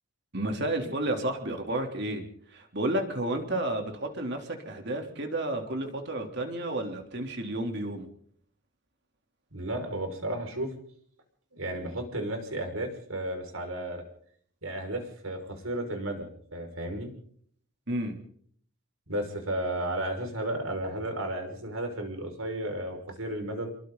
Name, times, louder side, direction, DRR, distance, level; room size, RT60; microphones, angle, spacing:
voice 1, 0.3-2.2 2.5-8.1 17.9-18.2, right 1 dB, 50° right, 3 dB, 3.4 m, -31 dB
voice 2, 9.5-10.7 11.5-14.0 14.6-17.1 19.1-23.7, right 1 dB, 70° right, 4 dB, 5.8 m, -33 dB
28.0 x 23.0 x 4.0 m, 0.62 s
head